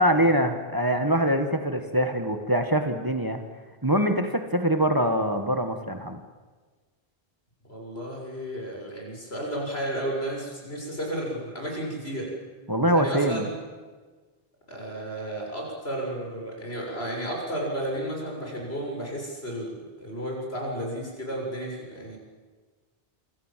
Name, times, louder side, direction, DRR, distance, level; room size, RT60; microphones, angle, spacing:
voice 1, 0.0-3.4 3.8-6.2 12.7-13.5, equal, 20° right, 6 dB, 1.7 m, -24 dB
voice 2, 7.7-12.3 12.9-13.5 14.7-22.2, right 1 dB, 80° left, 0 dB, 7.4 m, -33 dB
28.0 x 25.0 x 7.6 m, 1.4 s
omnidirectional pair, 1.0 m